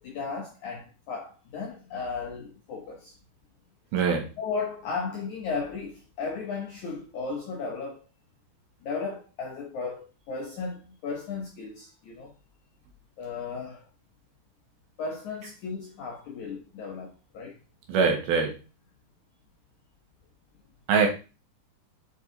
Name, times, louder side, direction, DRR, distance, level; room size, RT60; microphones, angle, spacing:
voice 1, 0.0-3.1 4.4-8.0 8.8-12.3 13.2-13.9 15.0-17.6, left 4 dB, 85° left, 1.6 m, -35 dB
voice 2, 3.9-4.3 17.9-18.6 20.9-21.1, right 5 dB, 70° right, 3.0 m, -23 dB
8.3 x 4.7 x 3.8 m
omnidirectional pair, 5.0 m